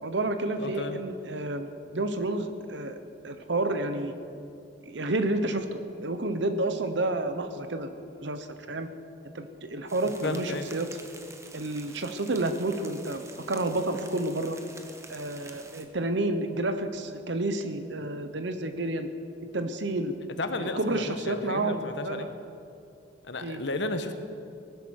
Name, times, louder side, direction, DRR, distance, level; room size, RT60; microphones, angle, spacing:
voice 1, 0.0-2.9 3.2-4.1 4.8-7.9 8.2-8.9 9.2-10.9 11.5-13.2 13.5-14.6 15.1-19.1 19.4-20.1 20.6-22.3 23.4-23.6, right 2 dB, 65° right, 8 dB, 1.0 m, -30 dB
voice 2, 0.6-1.0 10.2-10.7 20.4-22.3 23.2-24.1, left 2 dB, 65° left, 8 dB, 1.2 m, -33 dB
sound 1, 9.9-15.8, right 3 dB, 15° right, 1.0 m, -48 dB
19.0 x 11.5 x 6.5 m, 2.6 s
head